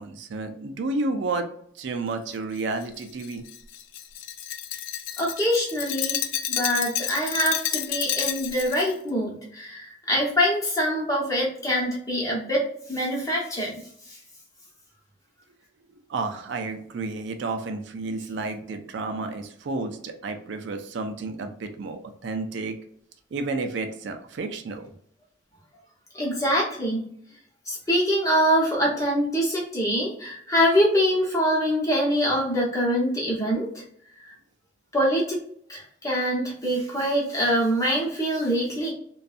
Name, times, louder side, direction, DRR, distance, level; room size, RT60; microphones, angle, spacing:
voice 1, 0.0-1.5 1.8-3.4 16.1-22.8 23.3-24.9, right 3 dB, 70° right, 6 dB, 0.4 m, -31 dB
Glass, 2.6-8.9, left 10 dB, 85° left, 0.3 m, -30 dB
voice 2, 5.2-6.2 6.5-13.7 14.1-14.2 26.1-27.1 27.7-33.8 34.2-34.3 34.9-35.4 35.7-38.9, equal, 15° left, -4 dB, 0.9 m, -24 dB
2.6 x 2.3 x 2.4 m, 0.65 s
head